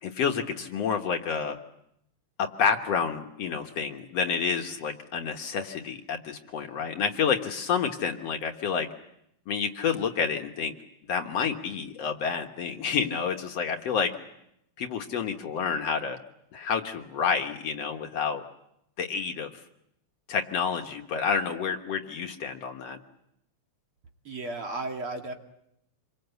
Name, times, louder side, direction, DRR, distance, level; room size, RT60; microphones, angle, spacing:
voice 1, 0.0-1.6 2.4-8.9 9.5-10.7 11.1-14.1 14.8-16.2 16.5-18.4 19.0-19.5 20.3-23.0, left 6 dB, 60° left, 4 dB, 2.2 m, -29 dB
voice 2, 24.2-25.3, right 2 dB, 45° right, 3 dB, 2.9 m, -34 dB
28.0 x 23.5 x 8.1 m, 0.79 s
omnidirectional pair, 3.5 m